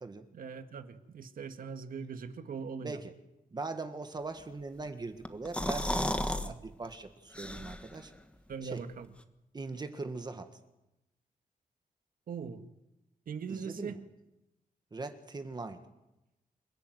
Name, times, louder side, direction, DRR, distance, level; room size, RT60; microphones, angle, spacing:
voice 1, 0.3-3.0 6.5-6.6 8.5-9.1 12.3-12.6 13.3-14.0, right 6 dB, 80° right, 8 dB, 1.8 m, -40 dB
voice 2, 2.8-3.1 3.5-8.1 8.6-8.8 9.5-10.5 13.5-14.0 14.9-15.8, right 3 dB, 30° right, 8 dB, 1.7 m, -41 dB
sound 1, 5.2-6.5 6.8-6.9 7.3-8.0, left 1 dB, 10° left, 1.4 m, -33 dB
28.5 x 16.0 x 9.3 m, 0.93 s
wide cardioid pair, 155°, 15 cm